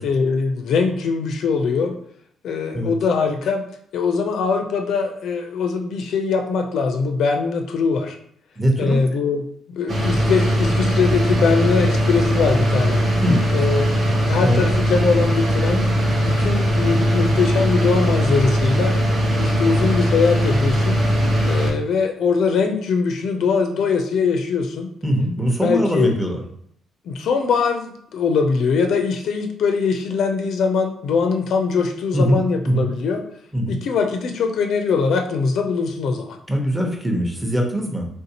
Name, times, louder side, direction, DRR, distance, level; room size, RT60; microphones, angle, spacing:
voice 1, 0.0-2.0 2.4-3.6 3.9-8.2 8.8-13.0 13.5-15.9 16.2-19.0 19.4-21.0 21.5-24.9 25.6-26.1 27.1-33.2 33.7-36.4, left 5 dB, 70° left, 4 dB, 0.4 m, -22 dB
voice 2, 8.6-9.0 13.2-13.5 14.4-14.6 25.0-26.4 32.1-32.9 33.5-33.8 36.5-38.1, equal, 5° right, 0 dB, 0.8 m, -21 dB
sound 1, 9.9-21.7, equal, 50° right, 0.8 m, -19 dB
3.4 x 2.6 x 2.8 m, 0.67 s
cardioid pair, 90°, 0 cm